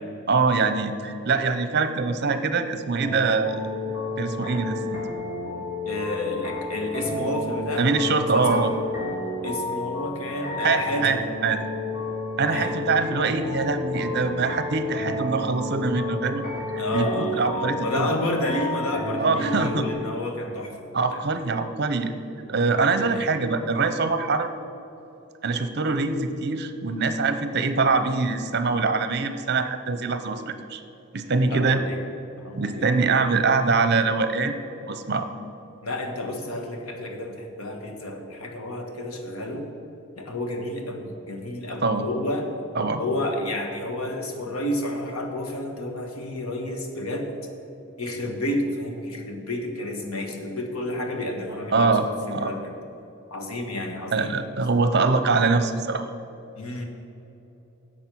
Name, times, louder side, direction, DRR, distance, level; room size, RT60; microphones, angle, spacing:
voice 1, 0.3-3.6 4.2-5.0 7.8-8.7 10.6-11.6 12.4-16.4 16.7-18.1 19.2-19.9 20.9-22.1 22.5-24.5 25.4-30.8 31.1-31.8 32.5-34.6 34.9-35.3 41.8-42.0 42.7-43.0 51.7-52.1 52.3-52.5 54.1-56.0, right 4 dB, 50° right, 9 dB, 0.7 m, -23 dB
sound 1, 3.0-19.9, left 2 dB, 40° left, 2.7 m, -31 dB
voice 2, 5.8-8.6 9.4-11.1 12.5-12.7 16.7-20.8 21.1-21.2 22.5-23.3 31.5-32.0 32.4-32.9 35.8-39.7 40.2-42.5 43.0-47.3 48.0-52.7 53.3-54.3 56.6-56.9, left 1 dB, 85° left, 3 dB, 1.4 m, -30 dB
10.0 x 7.5 x 6.2 m, 2.9 s
head